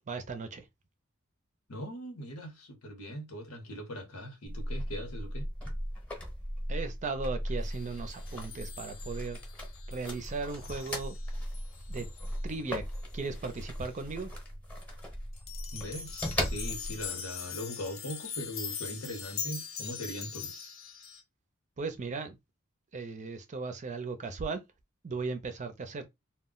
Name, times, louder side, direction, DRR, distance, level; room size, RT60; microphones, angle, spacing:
voice 1, 0.1-0.6 6.7-9.4 9.9-11.2 11.9-12.1 12.4-12.8 13.1-14.3 21.8-22.4 22.9-24.6 25.0-26.0, right 4 dB, 35° right, 0.5 m, -37 dB
voice 2, 1.7-5.5 15.7-20.7, equal, 90° left, 1.0 m, -40 dB
sound 1, 4.5-17.1, equal, 5° left, 0.8 m, -38 dB
sound 2, 7.7-12.6 12.9-13.0 13.5-13.7 15.3-21.2, left 7 dB, 65° left, 0.6 m, -42 dB
2.2 x 2.1 x 3.7 m
head